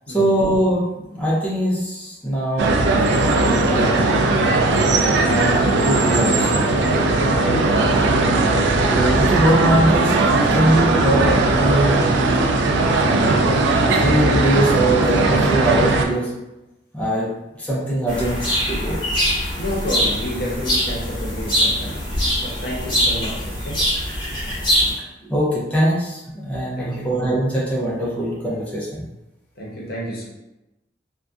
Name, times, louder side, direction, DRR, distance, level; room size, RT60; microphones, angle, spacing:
voice 1, 0.1-4.3 5.1-6.7 8.9-10.1 10.5-12.2 12.9-13.4 13.9-16.3 16.9-17.3 17.6-18.4 18.7-19.0 25.3-29.0, right 1 dB, 10° left, -7 dB, 0.5 m, -22 dB
sound 1, 2.6-16.0, right 2 dB, 80° right, 0.3 m, -18 dB
voice 2, 4.8-5.2 7.4-8.7 19.6-22.1 22.4-23.9 26.8-27.1 29.6-30.3, equal, 60° left, -4 dB, 0.7 m, -30 dB
sound 2, 18.1-24.9, equal, 30° left, 0.9 m, -23 dB
2.5 x 2.1 x 2.3 m, 0.95 s
head